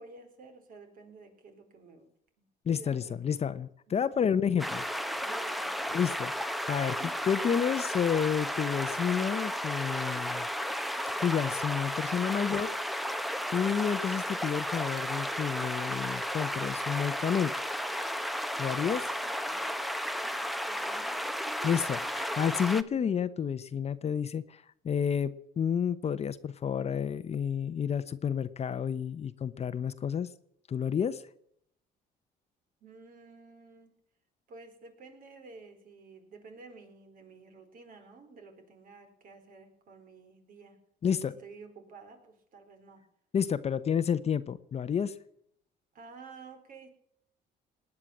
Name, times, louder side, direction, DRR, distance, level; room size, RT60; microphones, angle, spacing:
voice 1, 0.0-2.1 2.4-4.2 5.2-6.4 6.8-7.2 19.2-19.7 20.6-21.9 32.8-34.0 34.5-43.1 45.9-46.9, right 4 dB, 55° right, 6 dB, 4.3 m, -51 dB
voice 2, 2.7-4.8 5.1-5.2 5.9-6.9 7.3-10.5 11.2-12.7 13.5-17.5 18.6-19.0 21.6-30.3 30.7-31.2 41.0-41.3 43.3-45.1, left 7 dB, 40° left, 13 dB, 0.9 m, -30 dB
sound 1, 4.6-22.8, equal, ahead, 1.0 m, -33 dB
19.0 x 10.0 x 7.4 m, 0.72 s
cardioid pair, 110°, 17 cm